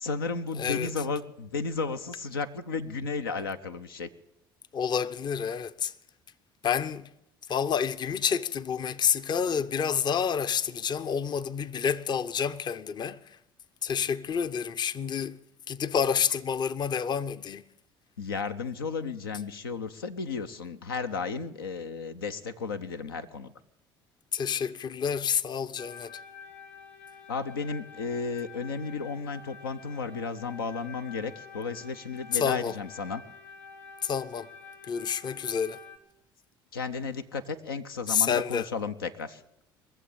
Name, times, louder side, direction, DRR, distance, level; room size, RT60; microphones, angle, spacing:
voice 1, 0.0-4.1 18.2-23.5 27.3-33.2 36.7-39.4, left 4 dB, 90° left, 0.6 m, -33 dB
voice 2, 0.6-0.9 4.7-5.9 6.6-7.1 7.5-13.2 13.8-15.4 15.7-17.6 24.3-26.2 32.4-32.7 34.0-34.5 34.9-35.8 38.1-38.7, left 7 dB, 40° left, 0.6 m, -29 dB
sound 1, 25.8-36.0, left 5 dB, 60° left, 2.4 m, -48 dB
22.0 x 7.4 x 8.4 m
hypercardioid pair, 65°, 12 cm